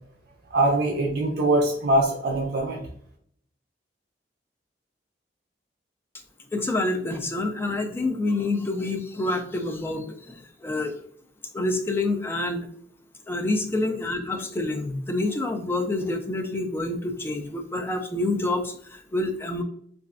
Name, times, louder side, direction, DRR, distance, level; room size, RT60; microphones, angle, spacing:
voice 1, 0.5-2.8, right 1 dB, 60° right, 0 dB, 0.5 m, -22 dB
voice 2, 6.5-10.9 11.5-12.7 13.3-19.6, left 2 dB, 15° left, 4 dB, 0.3 m, -27 dB
3.0 x 2.4 x 2.4 m, 0.64 s
head